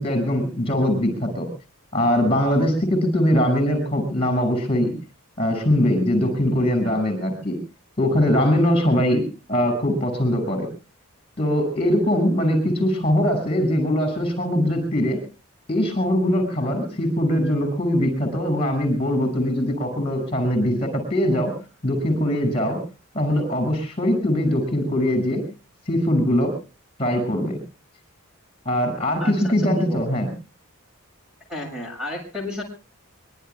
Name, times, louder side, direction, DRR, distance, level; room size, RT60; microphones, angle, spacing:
voice 1, 0.0-1.5 1.9-4.9 5.4-7.6 8.0-9.2 9.5-10.7 11.4-15.2 15.7-21.5 21.8-22.8 23.1-25.4 25.9-26.5 27.0-27.6 28.7-30.3, equal, 25° left, 7 dB, 6.0 m, -21 dB
voice 2, 29.2-30.0 31.5-32.6, left 1 dB, 5° right, 1 dB, 6.9 m, -32 dB
24.0 x 24.0 x 2.3 m, 0.34 s
head